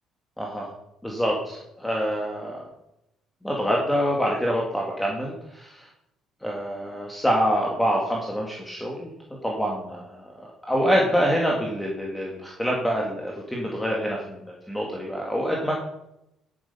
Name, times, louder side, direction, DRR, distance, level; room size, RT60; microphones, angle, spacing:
voice 1, 0.4-0.7 1.0-2.7 3.4-5.9 6.4-9.1 9.4-10.2 10.7-14.4 14.7-15.7, equal, 5° left, -2 dB, 2.0 m, -26 dB
10.5 x 8.7 x 5.5 m, 0.83 s
cardioid pair, 145°, 0 cm